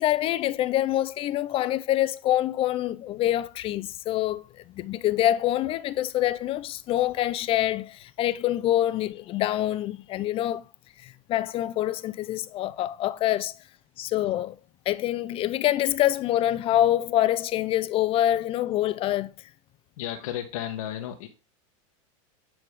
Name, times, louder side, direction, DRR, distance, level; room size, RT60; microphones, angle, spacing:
voice 1, 0.0-10.6 11.0-13.5 14.0-14.6 14.9-19.3, left 13 dB, 30° left, 0.5 m, -25 dB
voice 2, 20.0-21.3, left 11 dB, 75° left, 1.1 m, -33 dB
9.1 x 3.5 x 4.8 m
supercardioid pair, 130°, 17 cm